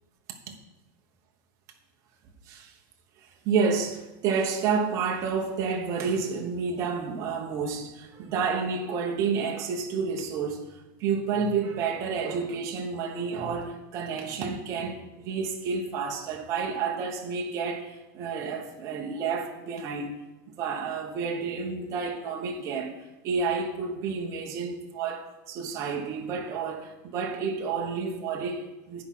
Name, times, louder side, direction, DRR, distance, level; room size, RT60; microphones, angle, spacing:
voice 1, 3.2-10.7 11.0-20.1 20.5-22.9 23.2-29.0, right 5 dB, 25° right, 0.9 m, -30 dB
10.5 x 4.7 x 5.8 m
supercardioid pair, 180°, 11 cm